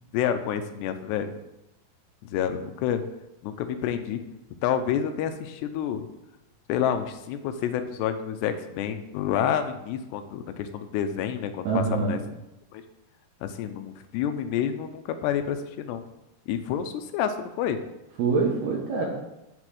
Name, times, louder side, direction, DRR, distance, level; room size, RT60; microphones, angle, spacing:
voice 1, 0.1-1.3 2.3-3.0 3.4-4.2 4.6-6.1 6.7-12.2 12.7-12.8 13.4-16.0 16.5-17.8, left 9 dB, 85° left, 8 dB, 2.9 m, -28 dB
voice 2, 11.6-12.2 18.2-19.1, right 4 dB, 70° right, -4 dB, 3.4 m, -25 dB
7.5 x 6.2 x 7.7 m, 0.92 s
omnidirectional pair, 4.8 m